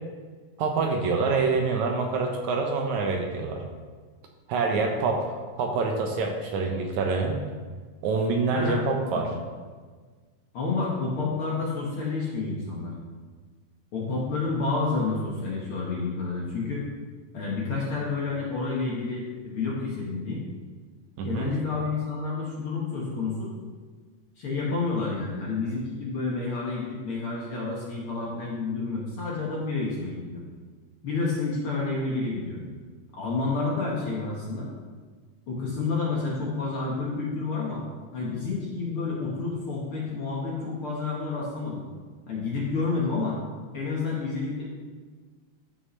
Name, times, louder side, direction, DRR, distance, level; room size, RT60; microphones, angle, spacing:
voice 1, 0.6-3.6 4.5-7.4 8.0-9.3 21.2-21.5, right 4 dB, 75° right, 2 dB, 2.0 m, -26 dB
voice 2, 8.5-9.4 10.5-12.9 13.9-16.8 17.3-20.4 21.2-23.5 24.4-30.4 31.0-32.6 33.1-34.7 35.5-37.8 38.1-41.8 42.3-43.4 43.7-44.7, left 3 dB, 55° left, -4 dB, 1.7 m, -29 dB
12.5 x 5.5 x 3.2 m, 1.5 s
omnidirectional pair, 3.7 m